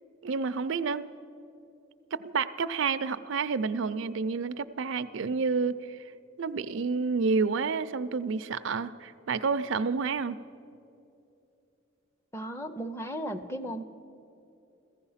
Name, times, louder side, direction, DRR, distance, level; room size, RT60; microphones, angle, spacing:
voice 1, 0.2-1.0 2.1-6.0 6.4-10.4, right 4 dB, 70° right, 12 dB, 0.5 m, -29 dB
voice 2, 12.3-13.8, equal, 10° left, 9 dB, 0.6 m, -35 dB
15.5 x 15.0 x 5.7 m, 2.7 s
head